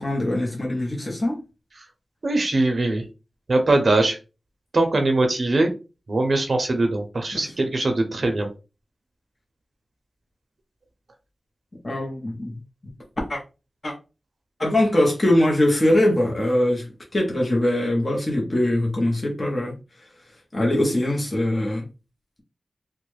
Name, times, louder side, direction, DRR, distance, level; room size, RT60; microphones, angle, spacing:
voice 1, 0.0-1.4 7.3-7.4 11.8-12.5 13.3-13.4 13.8-13.9 14.6-16.8 17.1-19.7 20.5-21.8, left 1 dB, 35° left, 0.9 m, -22 dB
voice 2, 2.2-3.0 3.5-4.2 4.7-5.7 6.1-8.5, right 2 dB, 60° right, 0.6 m, -21 dB
3.0 x 2.1 x 3.2 m
wide cardioid pair, 90°, 0 cm